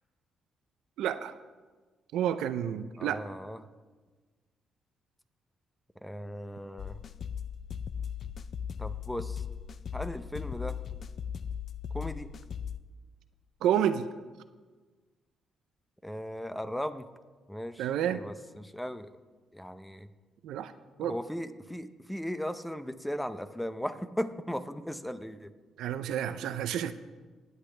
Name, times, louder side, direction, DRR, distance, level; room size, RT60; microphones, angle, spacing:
voice 1, 1.0-1.3 2.1-3.2 13.6-14.1 17.8-18.2 20.4-20.7 21.0-21.2 25.8-26.9, right 10 dB, 85° right, 12 dB, 0.5 m, -29 dB
voice 2, 3.0-3.6 6.0-7.0 8.8-9.4 9.9-10.8 11.9-12.3 16.0-17.0 17.5-19.1 19.5-20.1 21.0-25.5, equal, 5° left, 10 dB, 0.6 m, -37 dB
sound 1, 6.8-12.8, left 7 dB, 50° left, 0.4 m, -38 dB
19.5 x 8.2 x 3.3 m, 1.4 s
cardioid pair, 90°, 0 cm